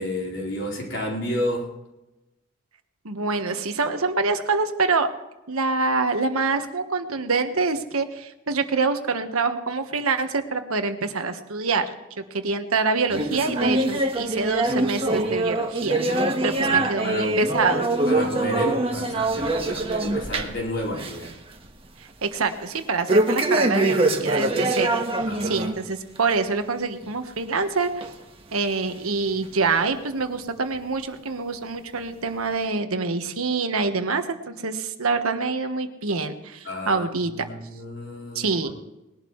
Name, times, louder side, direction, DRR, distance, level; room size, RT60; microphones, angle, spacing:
voice 1, 0.0-1.7 16.6-17.4 18.0-21.3 25.2-25.6 36.6-38.4, equal, 55° left, -2 dB, 4.5 m, -31 dB
voice 2, 3.0-5.1 5.5-11.9 12.3-17.8 22.2-27.9 28.5-37.3 38.3-38.7, right 4 dB, 90° right, 7 dB, 1.4 m, -26 dB
sound 1, 13.1-20.6 20.9-21.3 21.6-21.7 23.1-25.8 26.2-26.3 27.0-27.1 28.0-28.1 28.9-29.0, right 2 dB, 25° right, 1.4 m, -24 dB
20.5 x 11.5 x 3.2 m, 0.98 s
head